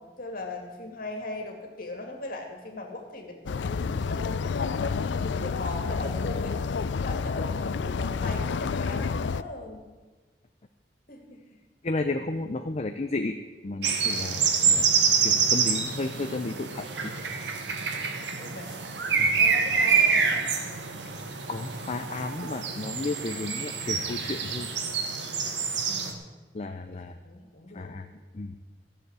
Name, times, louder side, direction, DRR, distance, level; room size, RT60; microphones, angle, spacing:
voice 1, 0.0-5.0 5.2-9.8 11.1-11.6 18.4-18.9 19.4-20.5 25.9-26.5 26.8-28.0, left 2 dB, 55° left, 2 dB, 2.5 m, -39 dB
sound 1, 3.5-9.4, left 5 dB, 85° left, 0.4 m, -29 dB
voice 2, 11.8-13.4 13.6-14.9 15.2-17.1 18.4-18.5 19.2-19.3 21.5-24.7 26.5-27.2 27.7-28.1 28.3-28.6, left 2 dB, 40° left, 6 dB, 0.6 m, -33 dB
sound 2, 13.8-26.1, right 5 dB, 80° right, 1.5 m, -26 dB
14.5 x 7.2 x 8.2 m, 1.3 s
head